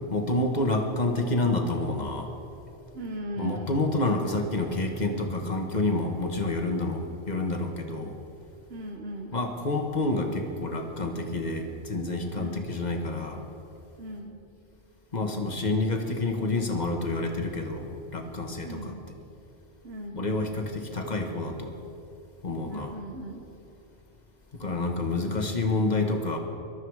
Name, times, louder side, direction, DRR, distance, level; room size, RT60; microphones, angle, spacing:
voice 1, 0.1-2.3 3.4-8.1 9.3-13.4 15.1-18.9 20.1-21.7 22.4-23.0 24.6-26.4, left 2 dB, 40° left, 4 dB, 1.5 m, -28 dB
voice 2, 2.9-3.7 8.7-9.3 12.3-12.7 14.0-14.4 18.6-19.0 19.8-20.2 22.6-23.4, right 1 dB, 70° right, 2 dB, 1.4 m, -38 dB
21.0 x 12.5 x 4.8 m, 2.9 s
omnidirectional pair, 1.1 m